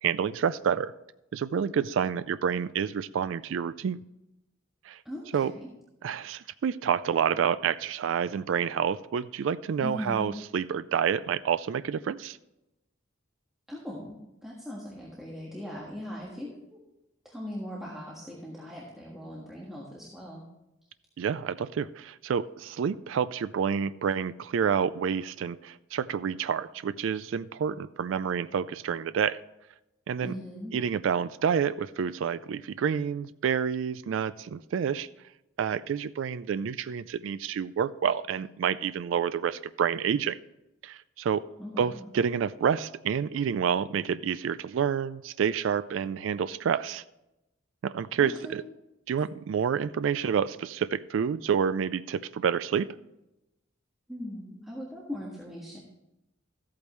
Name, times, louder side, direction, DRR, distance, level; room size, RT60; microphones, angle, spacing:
voice 1, 0.0-0.9 1.3-4.0 4.9-5.0 5.3-5.5 6.0-12.4 21.2-29.4 30.1-30.3 30.7-35.1 35.6-40.4 40.8-41.4 41.8-47.0 47.8-48.6 49.1-52.9, right 7 dB, 70° right, 15 dB, 0.3 m, -28 dB
voice 2, 5.0-5.7 9.8-10.3 13.7-16.8 17.2-20.5 30.2-30.8 41.6-42.1 48.2-48.6 54.1-55.8, equal, ahead, -6 dB, 1.5 m, -39 dB
14.0 x 8.5 x 3.1 m, 0.92 s
head